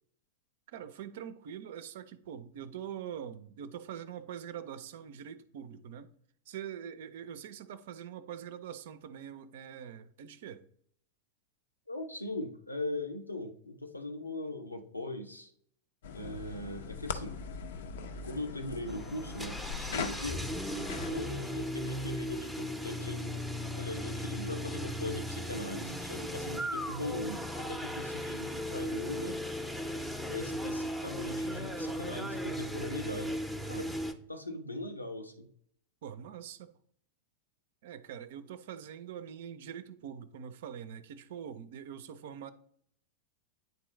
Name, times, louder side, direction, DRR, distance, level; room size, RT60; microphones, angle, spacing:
voice 1, 0.7-6.1 6.5-10.6 20.9-21.2 36.0-36.7 37.8-42.5, right 9 dB, 55° right, 0.5 m, -44 dB
voice 2, 11.9-15.5 16.1-17.4 18.2-20.4 21.1-23.4 23.8-29.4 30.3-33.4 33.7-33.9 34.3-35.5, left 1 dB, 85° left, 0.8 m, -40 dB
sound 1, 16.0-21.2, left 5 dB, 60° left, 0.5 m, -40 dB
sound 2, 18.9-34.1, equal, ahead, 0.6 m, -37 dB
9.3 x 3.8 x 3.1 m
figure-of-eight pair, 90°, 0 cm